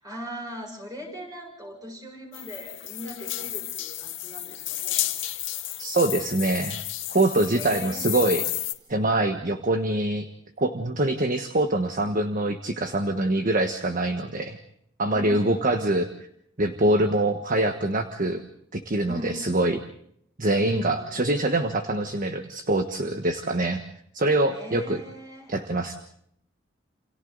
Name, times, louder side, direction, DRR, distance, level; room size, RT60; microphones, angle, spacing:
voice 1, 0.0-5.1 7.5-8.3 9.5-9.6 15.1-15.4 17.1-17.2 19.1-19.5 20.6-21.2 24.5-25.5, equal, 20° right, 1 dB, 7.1 m, -40 dB
sound 1, 2.3-8.7, left 14 dB, 85° left, 2.0 m, -32 dB
voice 2, 5.8-6.8 7.1-8.4 8.9-10.3 10.6-14.6 15.0-16.1 16.6-18.4 18.7-19.8 20.4-23.8 24.1-25.0 25.5-26.0, right 2 dB, 45° right, 7 dB, 1.3 m, -24 dB
29.0 x 28.5 x 4.0 m, 0.71 s
head